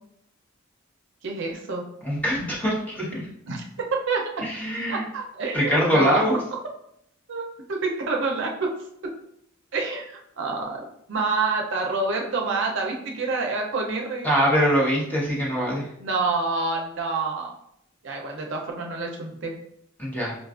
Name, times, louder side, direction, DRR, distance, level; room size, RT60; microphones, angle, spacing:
voice 1, 1.2-1.8 3.4-4.2 4.9-6.2 6.5-6.6 7.3-8.7 9.7-14.3 16.0-17.5 18.0-19.6, right 3 dB, 65° right, 1 dB, 0.5 m, -27 dB
voice 2, 2.0-3.2 4.4-5.1 5.5-6.4 14.2-15.8 20.0-20.3, equal, 10° left, -5 dB, 0.9 m, -23 dB
5.1 x 2.3 x 2.4 m, 0.74 s
head